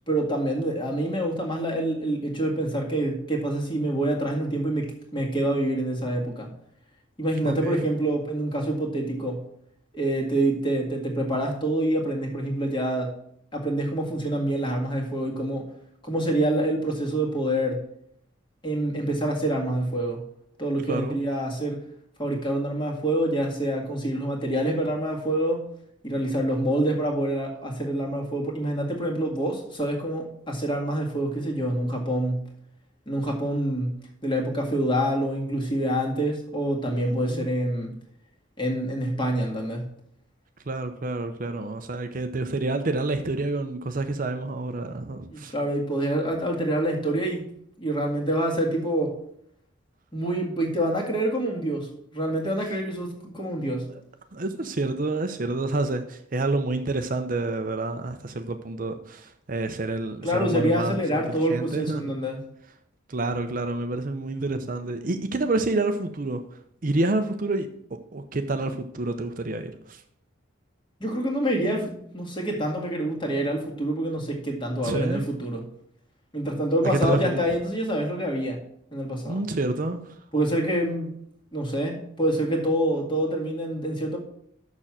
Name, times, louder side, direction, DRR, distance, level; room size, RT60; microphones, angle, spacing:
voice 1, 0.1-6.5 7.2-9.4 9.9-13.1 13.5-15.6 16.0-17.8 18.6-20.2 20.6-21.8 22.2-25.6 26.0-32.5 33.1-34.0 34.2-37.9 38.6-39.9 45.3-47.5 47.8-49.1 50.1-53.9 60.2-62.4 71.0-75.6 76.3-78.6 78.9-79.4 80.3-81.1 81.5-84.2, right 1 dB, 25° left, 0 dB, 1.9 m, -26 dB
voice 2, 7.4-7.9 20.9-21.2 36.9-37.5 40.7-45.5 54.3-62.1 63.1-66.4 66.8-67.7 68.1-70.0 74.8-75.2 76.8-77.4 79.3-80.2, right 2 dB, 40° right, 7 dB, 0.6 m, -28 dB
6.7 x 6.1 x 7.3 m, 0.69 s
head